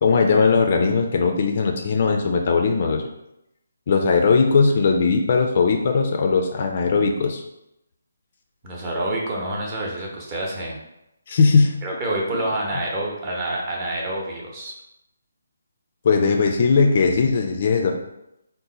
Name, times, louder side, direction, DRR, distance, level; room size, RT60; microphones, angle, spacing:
voice 1, 0.0-3.0 3.9-7.4 11.3-11.8 16.0-18.0, left 4 dB, 40° left, 3 dB, 0.4 m, -19 dB
voice 2, 8.6-10.8 11.8-14.7, right 1 dB, 25° right, -2 dB, 0.8 m, -27 dB
3.9 x 2.1 x 4.0 m, 0.87 s
figure-of-eight pair, 145°, 0 cm